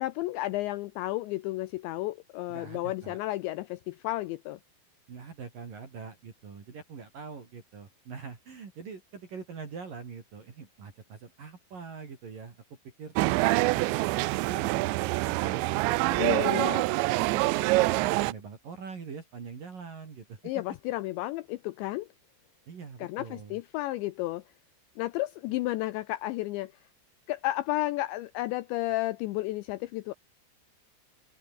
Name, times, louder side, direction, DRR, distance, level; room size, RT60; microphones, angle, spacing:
voice 1, 0.0-4.6 16.2-16.8 20.4-22.1 23.0-24.4 25.0-26.7 27.3-30.1, left 17 dB, 80° left, 2.7 m, -32 dB
voice 2, 2.5-3.2 5.1-12.6 13.0-13.3 13.7-16.6 17.2-20.5 22.7-23.6, right 5 dB, 45° right, 5.1 m, -43 dB
sound 1, 13.2-18.3, right 21 dB, 85° right, 2.6 m, -26 dB
open air
omnidirectional pair, 5.8 m